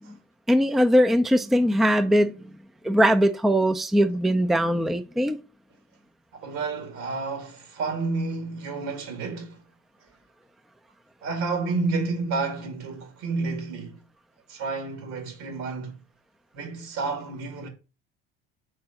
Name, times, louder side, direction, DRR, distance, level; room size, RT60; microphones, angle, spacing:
voice 1, 0.5-2.3 2.8-5.4, equal, ahead, 0.5 m, -21 dB
voice 2, 6.3-9.6 11.2-14.0 14.5-16.0 16.5-17.7, right 3 dB, 75° right, 2.1 m, -30 dB
4.9 x 3.9 x 5.6 m
supercardioid pair, 80°, 30 cm